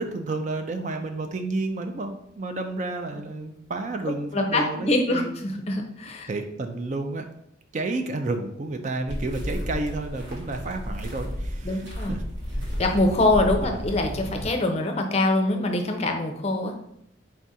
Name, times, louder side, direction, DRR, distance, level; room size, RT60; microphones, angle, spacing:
voice 1, 0.0-5.3 6.3-7.3 7.7-12.2 13.6-13.8, right 2 dB, 40° right, 6 dB, 0.4 m, -31 dB
voice 2, 4.3-6.3 11.6-12.2 12.8-16.8, left 2 dB, 35° left, 4 dB, 0.5 m, -24 dB
sound 1, 9.1-14.5, equal, 65° right, 1.2 m, -32 dB
4.4 x 2.4 x 4.1 m, 0.74 s
head